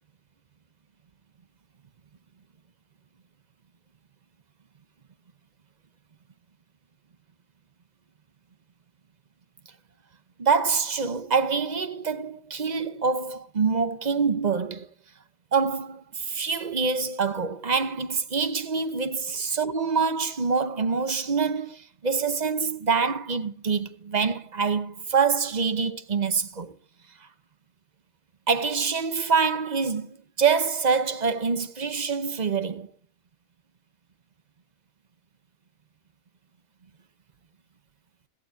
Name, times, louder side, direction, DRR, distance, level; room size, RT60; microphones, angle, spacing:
voice 1, 10.4-14.9 15.5-26.8 28.5-32.9, right 5 dB, 40° right, 0.9 m, -25 dB
17.0 x 15.0 x 2.7 m
omnidirectional pair, 1.4 m